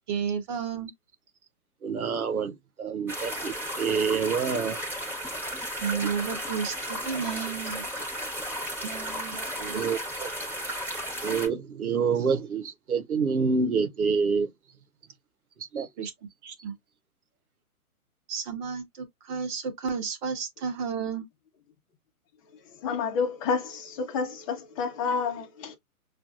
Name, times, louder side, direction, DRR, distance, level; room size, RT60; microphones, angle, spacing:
voice 1, 0.1-0.9 5.8-7.8 8.8-9.8 16.0-16.1 16.4-16.8 18.3-21.3, right 6 dB, 30° right, 1.4 m, -32 dB
voice 2, 1.8-4.8 9.7-10.3 11.2-14.5 15.7-15.9, right 5 dB, 70° right, 1.0 m, -27 dB
sound 1, 3.1-11.5, equal, 5° right, 1.3 m, -34 dB
voice 3, 22.8-25.8, left 5 dB, 25° left, 1.0 m, -29 dB
6.0 x 2.6 x 2.5 m
figure-of-eight pair, 130°, 45 cm